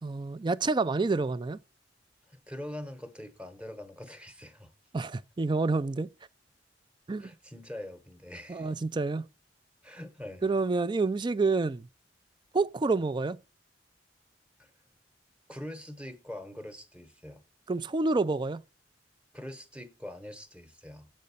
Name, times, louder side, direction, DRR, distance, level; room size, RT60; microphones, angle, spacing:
voice 1, 0.0-1.6 4.9-6.1 7.1-7.3 8.5-9.3 10.4-11.9 12.5-13.4 17.7-18.6, right 3 dB, 25° right, 0.4 m, -28 dB
voice 2, 2.3-4.7 7.2-8.7 9.8-10.4 14.6-14.7 15.5-17.4 19.3-21.1, left 1 dB, 5° right, 1.0 m, -43 dB
7.5 x 5.3 x 6.9 m
head